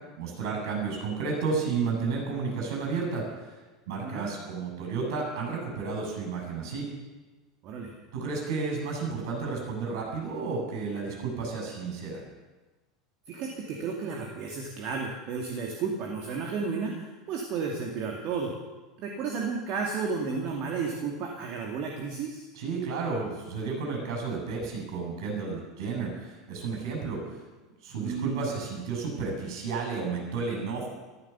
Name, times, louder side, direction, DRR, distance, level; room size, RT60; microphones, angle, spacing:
voice 1, 0.2-3.5 3.9-6.8 8.1-12.2 22.5-27.2 27.8-30.9, right 4 dB, 60° right, 0 dB, 7.7 m, -32 dB
voice 2, 13.3-18.5 19.0-22.4 28.0-28.5, right 5 dB, 45° right, 0 dB, 2.5 m, -32 dB
14.5 x 14.0 x 7.0 m, 1.2 s
figure-of-eight pair, 80°, 3 cm